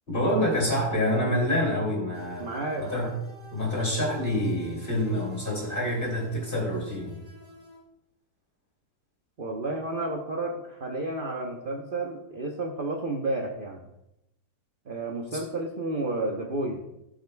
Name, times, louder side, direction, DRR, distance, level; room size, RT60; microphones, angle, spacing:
voice 1, 0.1-2.5 2.7-3.1 3.5-7.2 15.3-15.4, left 1 dB, 25° left, -3 dB, 3.0 m, -27 dB
sound 1, 2.1-7.8, right 1 dB, 25° right, 2.4 m, -50 dB
voice 2, 2.4-2.9 9.4-13.9 14.9-16.8, right 2 dB, 45° right, 1 dB, 0.7 m, -31 dB
17.5 x 6.5 x 2.3 m, 0.88 s
omnidirectional pair, 2.0 m